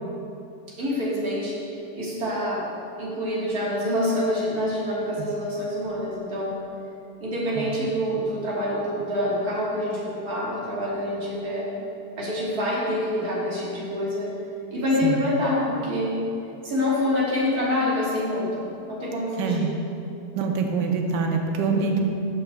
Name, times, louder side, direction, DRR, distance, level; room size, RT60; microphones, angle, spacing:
voice 1, 0.8-1.5 1.9-2.6 3.0-6.6 7.2-11.7 12.2-14.3 14.7-16.2 16.6-19.7 21.7-22.0, left 1 dB, 60° right, -7 dB, 2.0 m, -26 dB
voice 2, 19.4-19.8 20.4-22.0, right 5 dB, 90° right, 3 dB, 1.3 m, -25 dB
11.0 x 5.5 x 2.3 m, 2.7 s
omnidirectional pair, 1.9 m